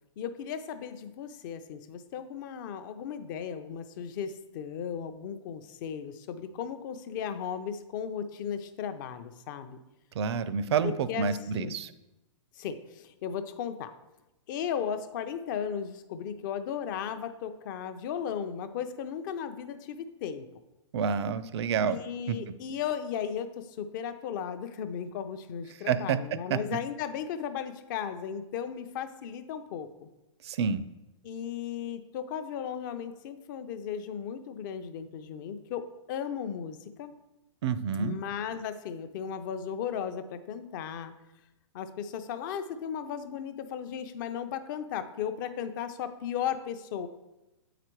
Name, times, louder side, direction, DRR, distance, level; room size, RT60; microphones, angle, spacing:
voice 1, 0.2-9.8 10.8-11.3 11.6-11.8 12.6-13.9 14.5-20.5 21.8-30.1 31.2-37.1 38.0-41.1 41.7-47.1, left 8 dB, 40° left, 10 dB, 0.6 m, -36 dB
voice 2, 10.2-11.9 20.9-22.0 22.3-22.4 25.9-26.2 26.5-26.6 30.4-30.8 37.6-38.2, right 6 dB, 55° right, 14 dB, 0.5 m, -28 dB
7.8 x 5.0 x 4.5 m, 0.98 s
hypercardioid pair, 140°, 16 cm